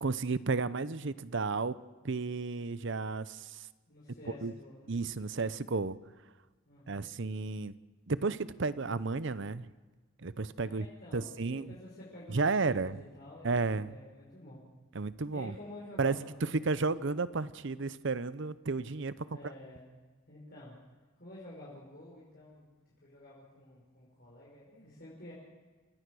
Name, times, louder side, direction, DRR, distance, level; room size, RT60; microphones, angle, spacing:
voice 1, 0.0-1.8 2.0-3.7 4.4-4.5 4.9-6.0 6.9-7.7 8.1-9.7 10.2-10.9 11.1-11.8 12.3-13.0 13.4-13.9 14.9-15.5 16.0-19.3, right 4 dB, 60° right, 16 dB, 0.7 m, -32 dB
voice 2, 3.9-4.9 6.7-7.0 10.6-14.6 15.3-16.6 19.2-20.0 20.3-20.8 21.2-25.3, left 1 dB, 50° left, -5 dB, 5.4 m, -50 dB
29.0 x 17.0 x 6.3 m, 1.3 s
head